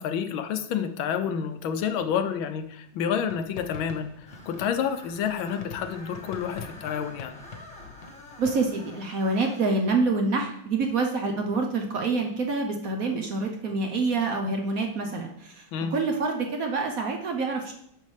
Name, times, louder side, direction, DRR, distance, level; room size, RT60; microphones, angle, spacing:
voice 1, 0.0-7.4 15.7-15.9, left 7 dB, 80° left, 9 dB, 1.4 m, -29 dB
sound 1, 3.3-8.8, left 5 dB, 60° left, 1.5 m, -45 dB
Screech, 4.3-9.8, left 1 dB, 5° left, 1.3 m, -47 dB
voice 2, 8.4-15.6 15.9-17.7, right 3 dB, 60° right, 3 dB, 0.9 m, -27 dB
9.5 x 6.5 x 3.2 m, 0.72 s
omnidirectional pair, 2.2 m